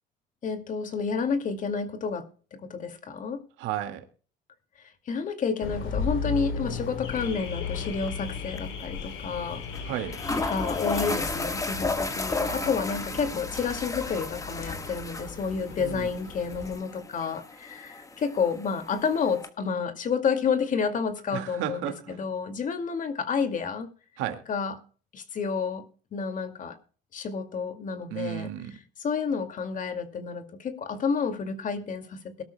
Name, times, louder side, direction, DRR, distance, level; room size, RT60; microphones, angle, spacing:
voice 1, 0.4-3.4 5.1-9.6 10.5-23.9 24.5-24.7 25.1-26.8 27.1-28.5 29.0-32.4, left 5 dB, 40° left, 2.2 m, -30 dB
voice 2, 3.6-4.1 9.8-10.2 12.4-12.9 13.2-13.3 15.8-16.1 21.3-22.3 24.2-24.4 28.1-28.8, right 11 dB, 80° right, 2.0 m, -34 dB
Car / Alarm, 5.6-16.8, left 5 dB, 75° left, 3.0 m, -36 dB
sound 1, 8.1-8.3 8.6-8.7 9.7-9.8 10.1-19.5, left 3 dB, 15° left, 1.5 m, -34 dB
22.5 x 12.5 x 2.2 m
cardioid pair, 120°, 20 cm